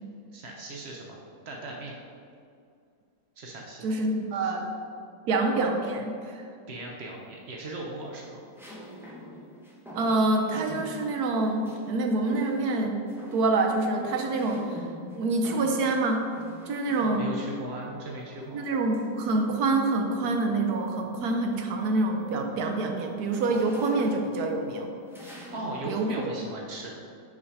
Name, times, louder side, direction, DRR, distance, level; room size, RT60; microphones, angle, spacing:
voice 1, 0.3-1.2 1.5-2.0 3.4-4.0 4.3-4.5 6.7-8.5 17.0-18.7 25.5-27.0, right 2 dB, 85° right, -1 dB, 0.5 m, -38 dB
voice 2, 3.8-4.7 5.3-6.4 9.9-13.1 13.3-14.6 15.2-16.2 16.7-17.3 18.5-24.9 25.9-26.1, right 2 dB, 70° right, 3 dB, 1.0 m, -26 dB
sound 1, 6.7-7.2 8.6-11.9 12.3-12.8 13.1-17.5 18.6-20.0 20.5-20.8 21.2-25.9, equal, ahead, 0.6 m, -45 dB
5.7 x 4.8 x 4.7 m, 2.3 s
omnidirectional pair, 2.0 m